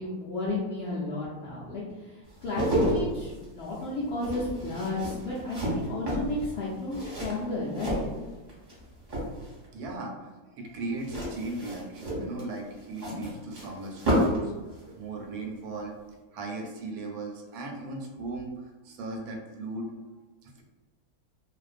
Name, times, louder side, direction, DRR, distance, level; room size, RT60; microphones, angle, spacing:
voice 1, 0.0-8.0, left 2 dB, 75° left, -7 dB, 0.5 m, -33 dB
sound 1, 2.3-8.8 9.0-9.7 11.0-14.5 14.7-14.9, equal, 40° right, 0.7 m, -31 dB
voice 2, 9.7-14.5 15.0-15.9 16.3-19.9 20.4-20.6, right 2 dB, 85° right, 1 dB, 1.1 m, -37 dB
2.5 x 2.1 x 2.4 m, 1.2 s
omnidirectional pair, 1.6 m